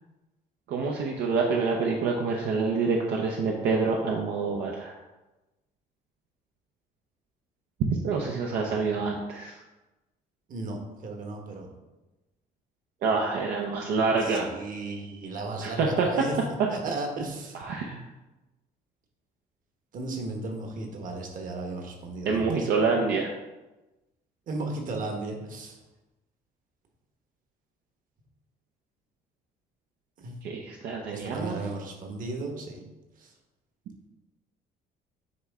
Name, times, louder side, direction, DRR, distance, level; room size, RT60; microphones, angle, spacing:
voice 1, 0.7-5.0 7.8-9.6 13.0-14.5 15.6-16.1 17.5-18.0 22.2-23.3 30.4-31.6, right 4 dB, 75° right, 0 dB, 0.7 m, -27 dB
voice 2, 10.5-11.7 14.2-16.3 16.7-17.6 19.9-22.7 24.5-25.8 30.2-30.3 31.1-32.8 33.2-33.3, right 2 dB, 55° right, 2 dB, 1.3 m, -35 dB
9.4 x 3.2 x 3.6 m, 1.1 s
cardioid pair, 110°, 17 cm